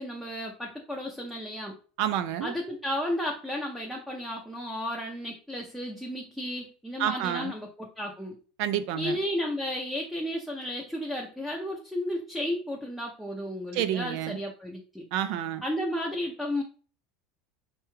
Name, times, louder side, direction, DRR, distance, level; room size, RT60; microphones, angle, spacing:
voice 1, 0.0-1.8 2.4-8.4 9.0-15.1 15.6-16.6, left 1 dB, ahead, 0.5 m, -33 dB
voice 2, 2.0-2.5 7.0-7.5 8.6-9.2 13.7-14.4 15.1-15.6, right 11 dB, 60° right, 0.3 m, -29 dB
4.6 x 2.3 x 3.0 m
supercardioid pair, 145°, 0 cm